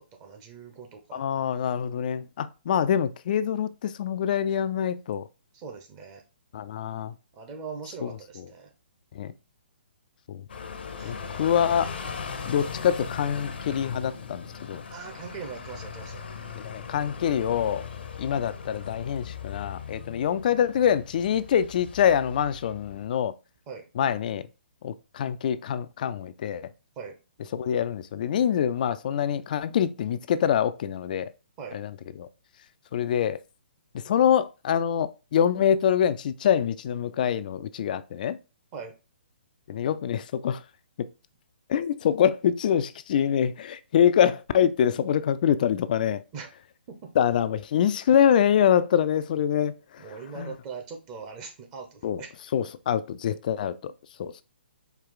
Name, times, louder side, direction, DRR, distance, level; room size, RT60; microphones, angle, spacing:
voice 1, 0.0-1.2 5.5-6.2 7.3-8.7 11.0-11.2 14.9-16.2 23.7-23.9 27.0-27.2 31.6-31.8 38.7-38.9 46.3-46.5 46.9-47.0 50.0-52.3, right 5 dB, 30° right, 0.9 m, -41 dB
voice 2, 1.1-5.2 6.5-7.1 8.0-8.1 9.1-9.3 10.3-10.4 11.0-11.9 12.5-14.8 16.6-17.9 18.2-23.3 24.0-24.5 24.8-26.7 27.5-31.3 31.7-31.9 32.2-32.3 32.9-33.4 34.0-38.4 39.7-40.6 41.7-46.2 47.2-50.0 50.4-50.5 52.0-52.2 52.5-53.9 54.2-54.3, left 9 dB, 45° left, 0.3 m, -25 dB
sound 1, 10.5-23.1, left 6 dB, 65° left, 0.7 m, -39 dB
4.6 x 2.4 x 3.8 m
figure-of-eight pair, 135°, 6 cm